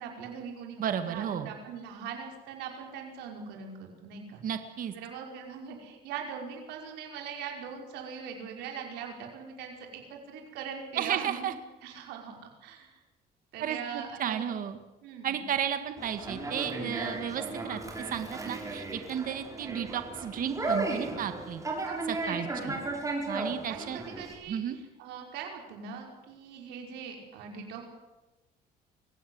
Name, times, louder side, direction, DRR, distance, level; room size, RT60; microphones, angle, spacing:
voice 1, 0.0-4.4 4.9-11.5 11.8-12.9 13.5-14.5 15.0-15.4 21.8-22.0 22.2-22.7 23.7-24.6 25.0-27.9, right 7 dB, 90° right, 2 dB, 5.3 m, -41 dB
voice 2, 0.8-1.5 4.4-4.9 11.0-11.5 13.6-14.8 15.2-21.6 22.1-22.8 23.3-24.0 24.5-24.8, right 9 dB, 55° right, 9 dB, 1.9 m, -33 dB
Conversation, 16.0-24.3, right 2 dB, 20° right, 6.9 m, -35 dB
24.0 x 16.5 x 9.6 m, 1.1 s
cardioid pair, 110°, 17 cm